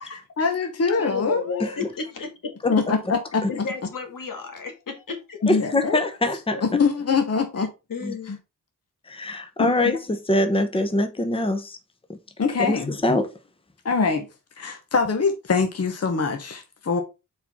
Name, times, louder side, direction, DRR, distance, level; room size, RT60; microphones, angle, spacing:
voice 1, 0.0-1.4 2.7-3.7 5.4-6.0 6.6-7.7 8.3-8.4 9.6-9.7 12.4-13.0 13.8-14.3 14.6-17.0, left 5 dB, 50° left, 1.0 m, -23 dB
voice 2, 1.0-2.8 3.5-5.5 6.5-6.6 7.6-8.3, left 5 dB, 80° left, 1.7 m, -33 dB
voice 3, 2.6-2.9 3.4-3.5 5.5-6.6 8.0-8.2 9.1-11.8 12.7-13.3, left 2 dB, 15° left, 0.9 m, -23 dB
6.7 x 4.4 x 4.1 m
wide cardioid pair, 100°, 32 cm